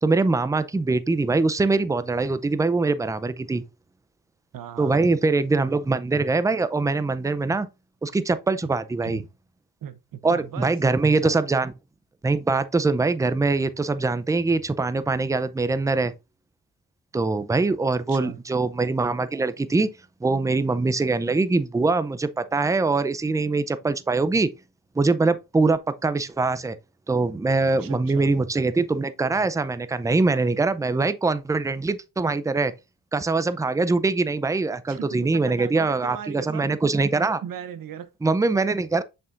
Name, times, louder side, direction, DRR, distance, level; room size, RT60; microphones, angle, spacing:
voice 1, 0.0-3.6 4.8-7.7 8.0-9.2 10.2-11.7 12.2-16.1 17.1-19.9 20.2-24.5 25.0-26.8 27.1-32.7 33.1-37.4 38.2-39.0, right 3 dB, 10° right, 0.4 m, -23 dB
voice 2, 4.5-5.1 9.0-9.3 9.8-10.7 11.2-11.4 18.1-18.4 27.8-28.3 34.9-36.7 37.4-38.1, right 9 dB, 60° right, 0.8 m, -37 dB
6.7 x 5.7 x 2.5 m
cardioid pair, 85°, 38 cm